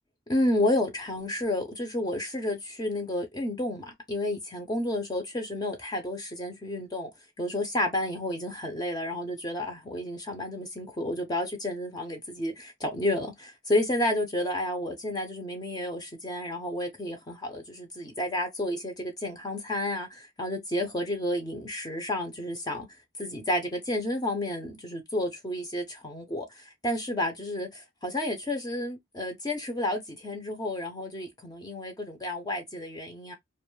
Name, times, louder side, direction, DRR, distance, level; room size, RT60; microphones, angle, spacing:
voice 1, 0.3-7.1 7.4-22.9 23.2-33.4, left 1 dB, 20° left, 0.5 m, -31 dB
2.5 x 2.2 x 3.1 m
head